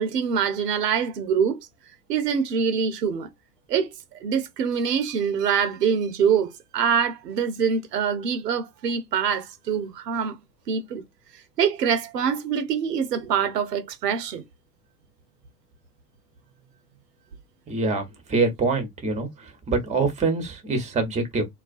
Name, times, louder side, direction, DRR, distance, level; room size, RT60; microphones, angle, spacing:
voice 1, 0.0-1.6 2.1-3.3 3.7-3.9 4.2-10.4 10.7-11.0 11.6-14.4, right 7 dB, 85° right, 0.6 m, -24 dB
voice 2, 17.7-18.0 18.3-19.3 19.7-21.5, right 3 dB, 15° right, 0.7 m, -24 dB
2.3 x 2.2 x 2.4 m
hypercardioid pair, 85°, 47 cm